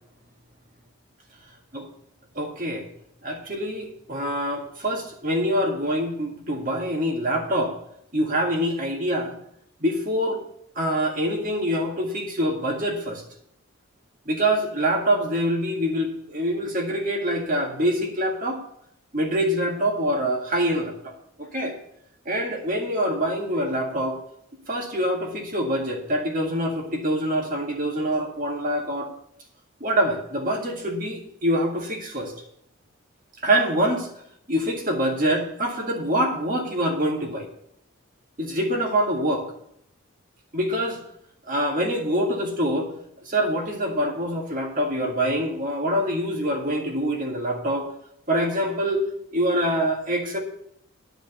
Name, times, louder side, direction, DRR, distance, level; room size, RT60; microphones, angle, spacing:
voice 1, 2.4-2.9 3.2-7.7 8.1-9.4 9.8-10.4 10.8-13.2 14.3-18.6 19.1-20.9 21.4-21.8 22.3-24.2 24.7-29.1 29.8-32.3 33.4-34.1 34.5-37.5 38.4-39.5 40.5-41.0 41.5-42.9 43.2-47.9 48.3-49.0 49.3-50.4, equal, 40° right, 1 dB, 1.9 m, -25 dB
11.0 x 5.2 x 8.0 m, 0.72 s
head